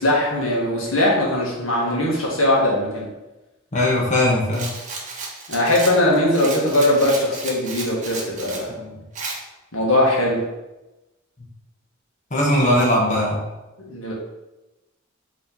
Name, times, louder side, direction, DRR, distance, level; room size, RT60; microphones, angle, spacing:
voice 1, 0.0-3.1 5.5-8.7 9.7-10.4 13.9-14.1, left 1 dB, 90° left, -3 dB, 1.7 m, -20 dB
voice 2, 3.7-4.7 8.8-8.9 12.3-13.4, left 1 dB, 40° left, -4 dB, 1.4 m, -19 dB
Rattle, 4.5-8.7 9.1-9.4, right 4 dB, 40° right, 1.1 m, -33 dB
5.2 x 3.4 x 5.2 m, 1.0 s
head